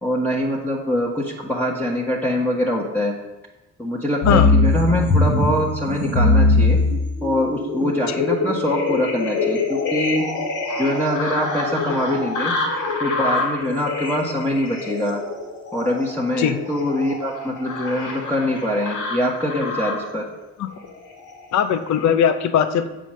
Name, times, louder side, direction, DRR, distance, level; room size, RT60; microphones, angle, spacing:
voice 1, 0.0-3.1 3.8-6.8 7.2-10.3 10.8-12.5 13.0-15.2 15.7-20.2, left 1 dB, 5° left, -4 dB, 1.3 m, -23 dB
sound 1, 4.2-20.1 20.8-21.4 21.9-22.0, left 3 dB, 85° left, 2.2 m, -23 dB
voice 2, 21.5-22.9, left 8 dB, 65° left, 9 dB, 0.8 m, -19 dB
7.6 x 5.1 x 6.3 m, 1.0 s
cardioid pair, 90°, 30 cm